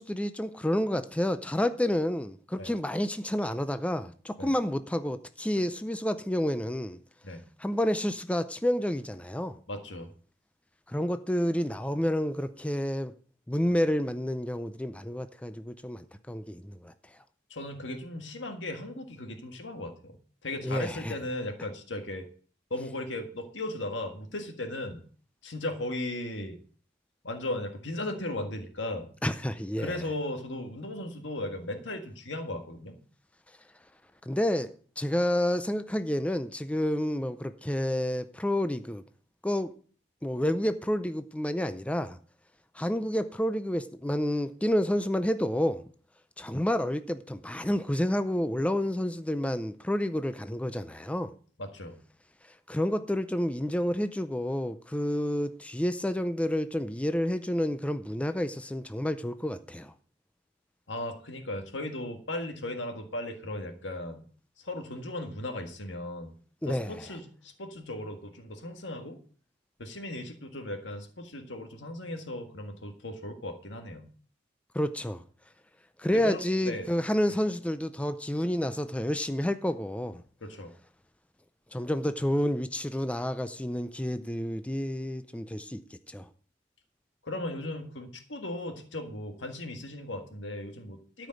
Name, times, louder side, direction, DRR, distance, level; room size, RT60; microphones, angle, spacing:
voice 1, 0.0-7.0 7.6-9.6 10.9-13.1 13.5-16.9 20.6-21.1 29.2-30.0 34.3-39.0 39.4-39.7 40.2-42.2 42.7-45.8 46.4-51.3 52.7-59.9 66.6-67.0 74.7-75.2 76.0-80.2 81.7-86.3, equal, 5° left, 0.5 m, -29 dB
voice 2, 9.7-10.1 17.5-20.2 20.4-22.3 22.7-25.0 25.4-26.6 27.2-29.1 29.8-32.9 51.6-52.0 60.9-64.2 64.6-66.3 66.6-69.2 69.8-74.1 76.1-76.9 80.4-80.7 87.2-91.3, left 1 dB, 75° left, 1.7 m, -37 dB
13.5 x 5.2 x 7.7 m
head